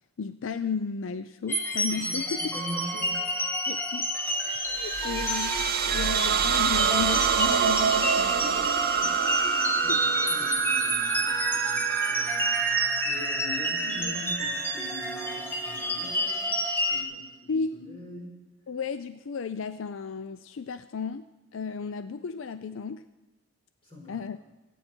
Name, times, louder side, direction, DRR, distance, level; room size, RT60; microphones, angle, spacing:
voice 1, 0.2-2.5 3.7-8.7 9.9-10.2 17.5-17.8 18.7-21.3 21.5-23.0 24.1-24.4, left 5 dB, 75° left, 12 dB, 0.4 m, -34 dB
sound 1, 1.5-17.0, equal, 10° left, 1.5 m, -30 dB
voice 2, 2.0-3.4 8.7-9.1 9.5-18.4 23.8-24.2, left 1 dB, 25° left, -2 dB, 4.8 m, -43 dB
sound 2, 4.7-15.3, right 7 dB, 50° right, 0.5 m, -27 dB
26.0 x 9.2 x 4.5 m, 1.2 s
head